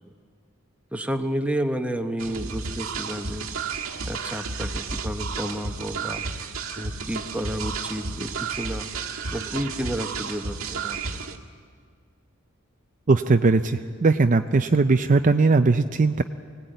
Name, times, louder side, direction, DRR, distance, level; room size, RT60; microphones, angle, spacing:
voice 1, 0.9-3.5 4.0-6.2 6.8-8.9 9.3-11.4, equal, 5° right, 5 dB, 1.0 m, -31 dB
sound 1, 2.2-11.4, right 4 dB, 85° right, 1.6 m, -32 dB
voice 2, 13.1-16.2, right 3 dB, 40° right, 8 dB, 0.5 m, -19 dB
23.0 x 18.0 x 9.2 m, 2.1 s
head